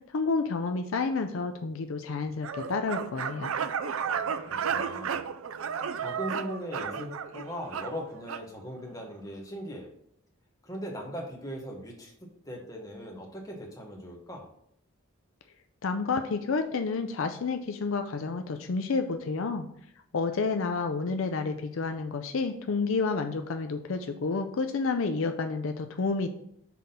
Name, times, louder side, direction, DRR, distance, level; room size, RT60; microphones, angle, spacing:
voice 1, 0.1-3.5 15.8-19.7 20.1-26.3, left 4 dB, 70° left, 6 dB, 0.5 m, -30 dB
sound 1, 2.4-8.5, right 7 dB, 75° right, 0.4 m, -33 dB
voice 2, 4.5-5.2 6.0-9.9 10.6-12.1 12.4-14.5, equal, 15° left, -1 dB, 1.3 m, -39 dB
5.9 x 3.7 x 5.5 m, 0.71 s
head